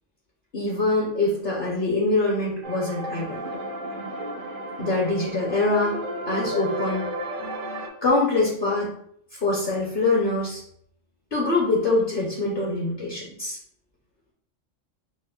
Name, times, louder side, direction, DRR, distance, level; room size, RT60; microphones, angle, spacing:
voice 1, 0.5-3.4 4.8-6.0 6.3-7.1 8.0-8.9 9.3-10.6 11.3-13.6, left 2 dB, 50° left, -4 dB, 0.8 m, -24 dB
sound 1, 2.6-7.9, right 1 dB, 60° right, 0.5 m, -33 dB
4.3 x 2.1 x 2.3 m, 0.67 s
omnidirectional pair, 1.3 m